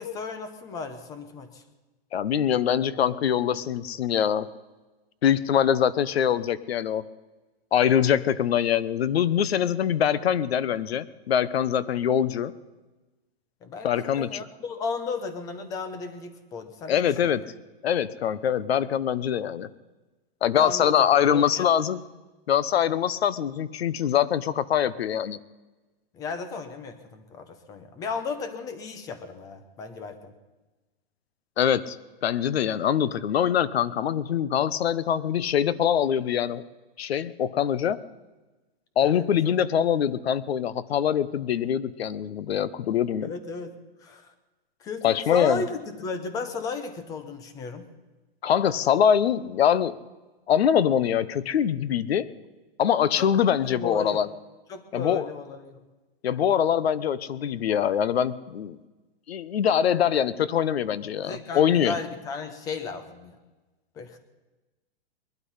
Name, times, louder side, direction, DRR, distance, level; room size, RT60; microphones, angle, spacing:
voice 1, 0.0-1.6 13.6-17.4 20.5-20.9 21.3-21.7 26.1-30.3 39.0-39.5 43.2-43.7 44.0-44.3 44.8-47.9 53.2-53.3 53.6-54.3 54.7-55.8 61.2-63.4 64.0-64.2, left 4 dB, 10° left, 9 dB, 0.8 m, -35 dB
voice 2, 2.1-4.5 5.2-7.1 7.7-12.5 13.8-14.4 16.9-17.5 17.8-19.7 20.4-22.0 22.5-25.4 31.6-36.6 37.0-38.0 39.0-43.3 45.0-45.6 48.4-49.9 50.5-52.3 52.8-54.3 54.9-55.2 56.2-58.8 59.3-61.9, left 9 dB, 80° left, 17 dB, 1.0 m, -23 dB
21.0 x 12.0 x 5.7 m, 1.2 s
hypercardioid pair, 170°, 31 cm